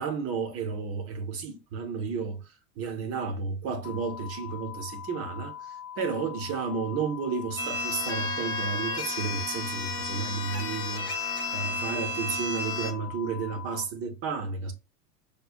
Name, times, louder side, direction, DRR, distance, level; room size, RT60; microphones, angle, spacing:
voice 1, 0.0-14.7, right 5 dB, 30° right, 0.6 m, -32 dB
sound 1, 3.8-13.9, left 9 dB, 65° left, 0.6 m, -42 dB
sound 2, 7.6-12.9, left 3 dB, 10° left, 0.6 m, -32 dB
5.0 x 2.2 x 2.4 m
hypercardioid pair, 105°, 47 cm